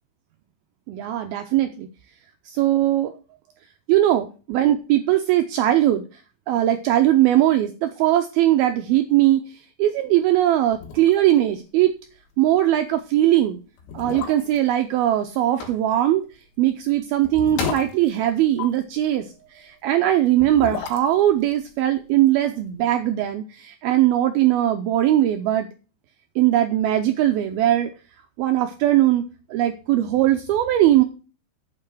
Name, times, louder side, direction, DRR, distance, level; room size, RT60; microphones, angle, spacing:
voice 1, 0.9-1.9 2.5-3.1 3.9-6.0 6.5-9.4 9.8-11.9 12.4-13.6 13.9-16.3 16.6-19.3 19.6-25.7 26.4-27.9 28.4-29.2 29.5-31.0, right 13 dB, 90° right, 7 dB, 2.2 m, -20 dB
sound 1, 10.4-10.5 10.7-11.4 11.7-11.8 12.2-12.4 13.1-13.2 13.8-14.7 16.2-18.9 20.2-22.4 22.7-22.8, left 7 dB, 90° left, 3.9 m, -34 dB
sound 2, 14.2-14.3 14.9-15.2 15.6-15.8 17.0-17.1 17.6-18.0 18.6-18.7, left 4 dB, 75° left, 4.5 m, -31 dB
8.8 x 7.4 x 6.1 m, 0.35 s
omnidirectional pair, 5.1 m